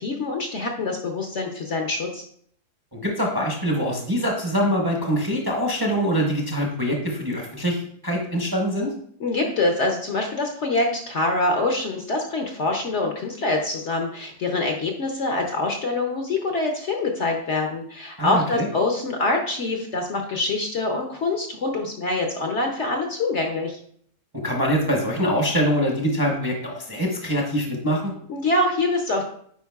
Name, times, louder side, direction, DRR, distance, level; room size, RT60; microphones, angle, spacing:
voice 1, 0.0-2.2 9.2-23.8 28.3-29.2, left 2 dB, 55° left, 2 dB, 0.9 m, -25 dB
voice 2, 2.9-8.9 18.2-18.7 24.3-28.1, equal, 20° right, -1 dB, 0.7 m, -24 dB
9.1 x 4.8 x 2.3 m, 0.63 s
omnidirectional pair, 1.7 m